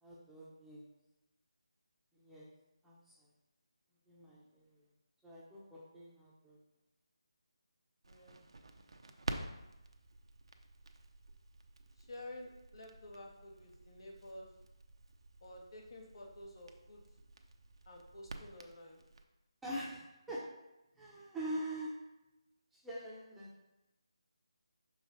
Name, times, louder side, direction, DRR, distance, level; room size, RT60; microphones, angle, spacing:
voice 1, 0.0-0.8 2.2-2.5 2.8-3.1 4.1-4.8 5.2-6.6 19.6-20.0 20.3-20.4 21.0-21.9 22.8-23.6, right 1 dB, 5° right, -8 dB, 0.9 m, -44 dB
Crackle, 8.0-19.2, right 2 dB, 65° right, 0.7 m, -50 dB
voice 2, 8.1-8.5 12.0-14.5 15.4-17.0 17.8-19.0, left 1 dB, 55° left, -1 dB, 1.7 m, -51 dB
6.2 x 5.1 x 4.1 m, 0.96 s
figure-of-eight pair, 160°, 3 cm